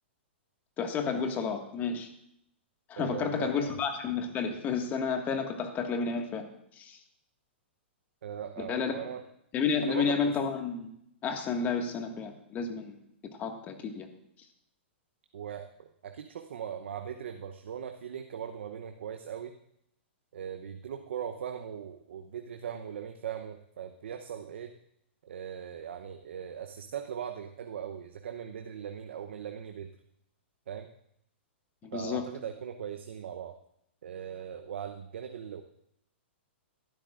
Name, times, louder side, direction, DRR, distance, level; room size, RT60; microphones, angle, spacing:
voice 1, 0.8-2.1 2.9-6.4 6.7-7.0 8.6-8.9 9.5-10.9 11.2-13.0 13.4-14.1 31.9-32.2, left 5 dB, 25° left, 4 dB, 1.7 m, -31 dB
voice 2, 3.0-3.8 8.2-9.2 9.8-10.3 15.3-19.5 20.3-24.7 25.2-29.9 30.7-30.9 31.9-33.5 34.0-35.6, right 8 dB, 70° right, 6 dB, 0.8 m, -39 dB
17.5 x 12.5 x 2.5 m, 0.75 s
hypercardioid pair, 125°, 6 cm